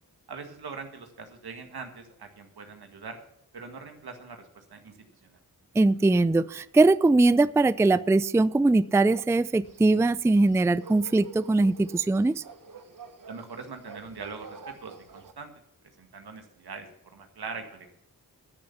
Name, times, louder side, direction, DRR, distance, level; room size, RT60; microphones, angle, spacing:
voice 1, 0.3-3.2 3.5-5.4 13.3-15.5 16.0-18.0, right 4 dB, 80° right, 5 dB, 1.9 m, -42 dB
voice 2, 5.8-12.4, right 2 dB, 10° right, 17 dB, 0.4 m, -21 dB
sound 1, 9.6-15.3, right 3 dB, 55° right, 1.2 m, -48 dB
13.5 x 7.0 x 7.0 m, 0.81 s
cardioid pair, 40°, 37 cm